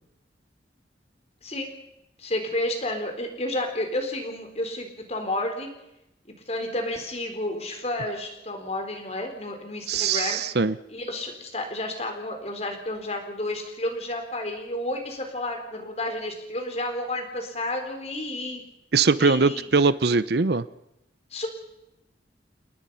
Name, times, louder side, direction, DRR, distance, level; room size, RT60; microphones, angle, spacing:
voice 1, 2.2-5.7 6.5-10.4 10.9-18.6 19.2-19.7 21.3-21.5, left 1 dB, 35° left, 5 dB, 4.3 m, -31 dB
voice 2, 9.9-10.7 18.9-20.6, right 4 dB, 60° right, 15 dB, 0.7 m, -21 dB
29.5 x 19.0 x 5.7 m, 0.88 s
head